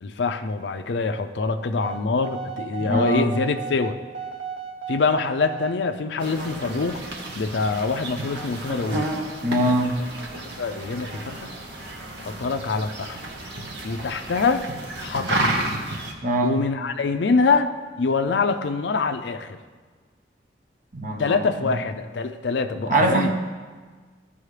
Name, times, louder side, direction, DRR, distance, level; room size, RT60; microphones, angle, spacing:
voice 1, 0.0-4.0 4.9-7.0 7.4-9.1 10.6-11.5 12.2-13.2 13.8-14.6 15.0-15.4 16.4-17.7 18.0-19.6 21.2-23.3, left 4 dB, 70° left, 8 dB, 0.5 m, -24 dB
sound 1, 1.8-5.8, right 6 dB, 90° right, 0.9 m, -35 dB
voice 2, 2.8-3.3 9.4-10.0 16.2-16.6 20.9-21.7 22.9-23.3, right 1 dB, 45° right, 2 dB, 1.1 m, -22 dB
sound 2, 6.2-16.1, right 1 dB, 65° right, 1.1 m, -31 dB
14.5 x 5.4 x 3.3 m, 1.4 s
head